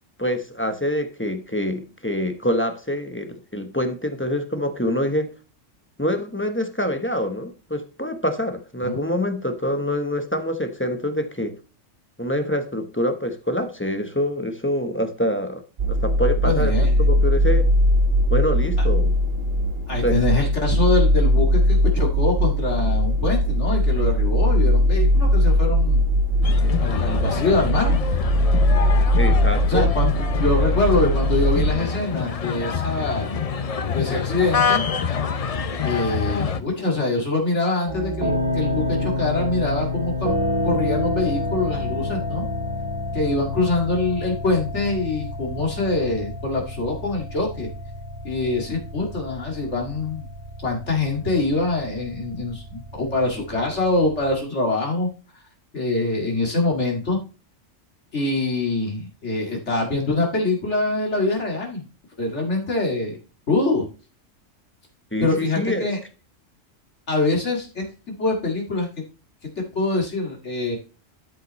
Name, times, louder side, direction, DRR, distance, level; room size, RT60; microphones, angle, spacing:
voice 1, 0.2-5.3 6.0-11.6 12.2-15.6 15.9-16.7 17.0-17.7 18.3-19.1 20.0-20.2 29.2-29.9 65.1-65.9, equal, 10° left, 1.0 m, -25 dB
sound 1, 15.8-31.7, equal, 50° right, 1.3 m, -19 dB
voice 2, 16.4-16.9 19.9-26.0 26.8-28.0 29.7-33.3 33.9-34.9 35.8-40.3 40.6-42.4 43.1-47.7 48.2-50.3 50.6-55.1 55.7-57.2 58.1-61.8 62.2-63.2 63.5-63.9 65.2-66.0 67.1-68.9 69.7-70.8, left 2 dB, 65° left, 2.4 m, -24 dB
sound 2, 26.4-36.6, left 6 dB, 45° left, 0.5 m, -26 dB
sound 3, 37.9-54.3, left 1 dB, 70° right, 2.9 m, -29 dB
12.5 x 5.6 x 3.1 m
omnidirectional pair, 1.3 m